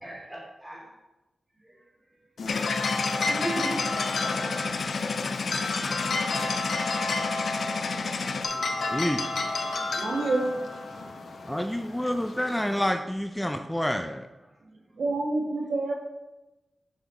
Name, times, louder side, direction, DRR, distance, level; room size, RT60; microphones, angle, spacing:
voice 1, 0.0-0.9 1.6-1.8 3.2-3.8 6.9-7.0 7.9-8.7 9.7-9.8 11.8-12.0, right 1 dB, 20° right, -3 dB, 2.7 m, -38 dB
sound 1, 2.4-12.8, left 3 dB, 85° left, 0.9 m, -32 dB
sound 2, 2.5-8.5, left 4 dB, 70° left, 0.5 m, -31 dB
voice 2, 8.9-9.2 11.5-14.3, left 1 dB, 5° left, 6 dB, 0.4 m, -28 dB
voice 3, 9.9-10.7 15.0-15.9, right 2 dB, 85° right, 0 dB, 1.5 m, -27 dB
7.9 x 6.0 x 4.1 m, 1.0 s
wide cardioid pair, 135°, 0 cm